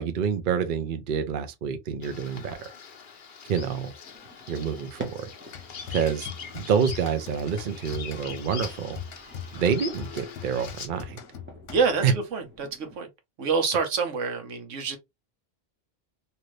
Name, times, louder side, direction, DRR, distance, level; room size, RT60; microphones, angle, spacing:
voice 1, 0.0-2.6 3.4-3.9 4.5-5.3 5.9-6.3 6.5-9.0 9.5-11.2 12.0-12.1, right 7 dB, 55° right, 0.6 m, -27 dB
Bird vocalization bird call bird song, 2.0-10.9, left 6 dB, 50° left, 0.7 m, -42 dB
sound 1, 4.0-13.0, right 1 dB, 10° right, 0.7 m, -49 dB
sound 2, 5.5-12.1, left 7 dB, 80° left, 1.0 m, -42 dB
voice 2, 11.7-13.1 13.4-15.0, right 5 dB, 80° right, 1.2 m, -27 dB
2.8 x 2.5 x 3.0 m
omnidirectional pair, 1.3 m